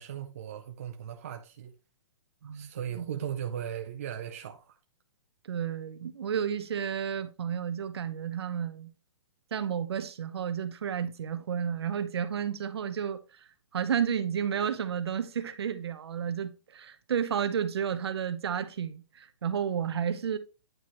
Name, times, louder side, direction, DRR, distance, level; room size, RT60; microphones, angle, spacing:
voice 1, 0.0-1.7 2.5-4.8, right 9 dB, 30° right, 0.4 m, -37 dB
voice 2, 5.5-8.9 9.5-13.2 13.7-20.4, right 8 dB, 60° right, 0.8 m, -31 dB
9.2 x 4.3 x 3.1 m
hypercardioid pair, 180°, 15 cm